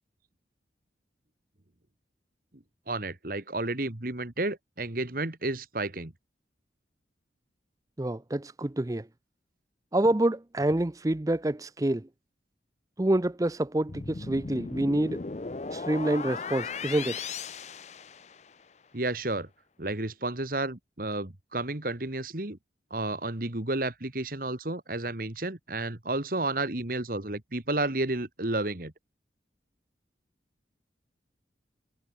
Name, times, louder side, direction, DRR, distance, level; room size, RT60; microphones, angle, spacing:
voice 1, 2.9-6.1 18.9-19.5 19.8-22.6 22.9-28.9, right 2 dB, 50° right, 1.9 m, -31 dB
voice 2, 8.0-9.1 9.9-12.1 13.0-15.2 15.7-17.2, right 1 dB, 20° right, 0.5 m, -27 dB
sound 1, 13.9-18.6, left 4 dB, 40° left, 0.6 m, -37 dB
head